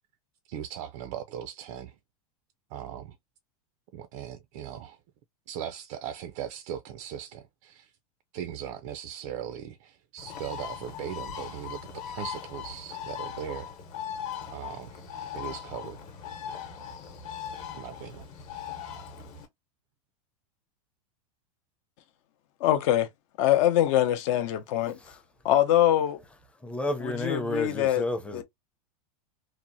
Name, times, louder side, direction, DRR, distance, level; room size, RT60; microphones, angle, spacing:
voice 1, 0.5-2.0 2.7-3.2 3.9-5.0 5.5-7.9 8.3-13.7 14.5-15.0 15.3-16.0 17.7-18.2, right 10 dB, 55° right, 0.4 m, -39 dB
Bird, 10.2-19.5, left 8 dB, 40° left, 0.9 m, -39 dB
voice 2, 22.6-23.1 23.4-25.0 25.4-26.2 27.0-28.0 28.3-28.4, left 12 dB, 60° left, 0.6 m, -23 dB
voice 3, 26.6-28.4, left 1 dB, 5° left, 0.5 m, -31 dB
2.8 x 2.0 x 2.6 m
supercardioid pair, 125°, 19 cm